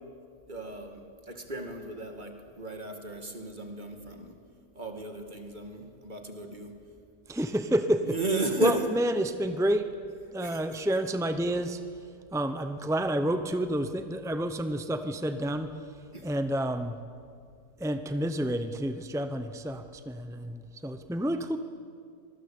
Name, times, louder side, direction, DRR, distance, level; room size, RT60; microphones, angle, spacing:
voice 1, 0.5-4.4 4.7-6.7 8.0-8.8 10.4-10.6 16.1-16.3, right 2 dB, 25° right, 4 dB, 2.4 m, -35 dB
voice 2, 7.3-8.2 8.6-9.9 10.3-17.0 17.8-21.6, right 1 dB, 5° right, 9 dB, 0.4 m, -29 dB
25.5 x 19.5 x 8.7 m, 2.2 s
omnidirectional pair, 1.9 m